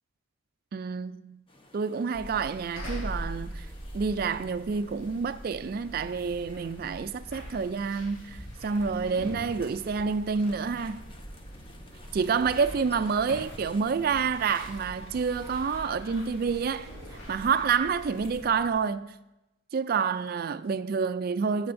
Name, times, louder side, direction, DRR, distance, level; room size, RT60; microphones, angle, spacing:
voice 1, 0.7-1.4 1.7-3.7 3.9-11.0 12.1-16.9 17.3-19.1 19.7-21.7, right 5 dB, 45° right, 0.3 m, -28 dB
sound 1, 1.5-16.1, left 1 dB, 25° left, 0.8 m, -51 dB
sound 2, 2.1-18.7, equal, 80° left, 2.5 m, -43 dB
sound 3, 12.2-18.3, left 1 dB, 55° left, 2.0 m, -52 dB
13.5 x 7.8 x 2.6 m
head